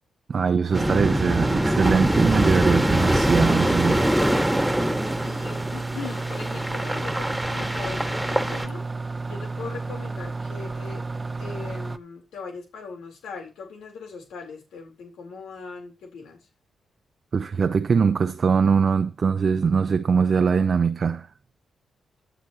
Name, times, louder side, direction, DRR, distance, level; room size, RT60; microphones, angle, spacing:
voice 1, 0.3-4.2 17.3-21.3, right 6 dB, 55° right, 0.7 m, -22 dB
sound 1, 0.7-8.7, equal, 10° right, 2.1 m, -24 dB
sound 2, 0.7-12.0, right 3 dB, 30° right, 0.9 m, -32 dB
voice 2, 5.2-8.8 9.3-11.1 11.4-16.5, left 5 dB, 80° left, 4.0 m, -40 dB
13.5 x 10.5 x 3.1 m
supercardioid pair, 50°, 0 cm